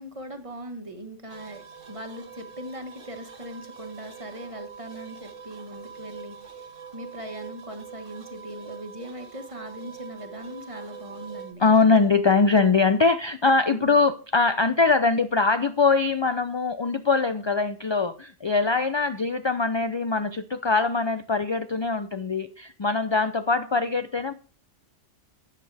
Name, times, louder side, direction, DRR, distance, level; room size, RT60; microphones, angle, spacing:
voice 1, 0.0-6.4 6.9-11.6 13.7-14.0, equal, 25° right, 1.5 m, -40 dB
sound 1, 1.3-11.5, right 7 dB, 65° right, 1.7 m, -44 dB
voice 2, 11.6-24.3, left 4 dB, 40° left, 0.4 m, -22 dB
12.5 x 8.9 x 3.4 m
omnidirectional pair, 1.2 m